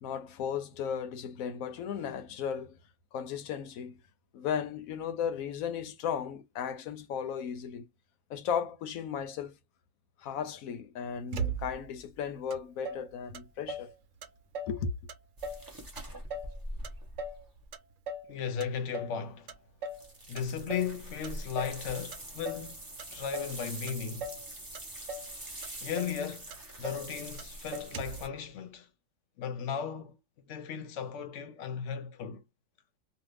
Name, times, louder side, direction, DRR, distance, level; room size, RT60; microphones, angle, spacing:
voice 1, 0.0-2.8 3.1-4.0 4.3-7.9 8.3-9.6 10.2-13.9 14.7-14.9, left 7 dB, 90° left, 1.0 m, -35 dB
Motor vehicle (road), 11.3-12.0 12.5-12.6 12.8-13.9 14.2-14.8 15.1-15.7 16.0-17.4 17.7-18.3 18.6-19.2 19.5-20.1 20.4-20.9 21.2-21.8 22.1-22.7 23.0-23.6 23.9-24.5 24.7-25.3 25.6-25.7 26.0-26.2 26.5-27.1 27.4-27.5 27.7-28.3, right 3 dB, 70° right, 1.0 m, -39 dB
sound 1, 15.4-17.6 19.9-28.3, right 1 dB, 20° right, 0.8 m, -44 dB
voice 2, 18.3-19.5 20.3-24.3 25.8-26.5 26.8-28.9 29.4-30.2 30.5-32.4, left 7 dB, 65° left, 0.9 m, -36 dB
2.6 x 2.4 x 3.2 m
omnidirectional pair, 1.4 m